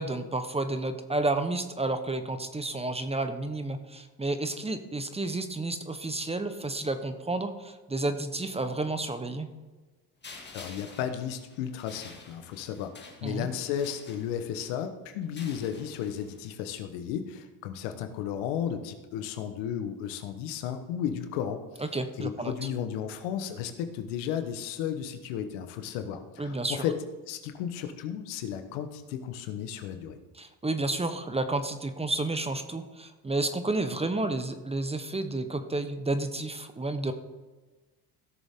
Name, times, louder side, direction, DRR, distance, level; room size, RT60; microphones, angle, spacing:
voice 1, 0.0-9.5 13.2-13.5 21.8-22.5 26.4-26.8 30.3-37.1, right 2 dB, 15° right, 9 dB, 0.9 m, -31 dB
sound 1, 10.2-14.7 15.2-16.5, left 4 dB, 25° left, 2.0 m, -50 dB
voice 2, 10.5-21.9 22.2-27.0 27.3-30.2, left 9 dB, 80° left, 8 dB, 1.2 m, -34 dB
16.5 x 6.7 x 3.7 m, 1.2 s
supercardioid pair, 85°, 45 cm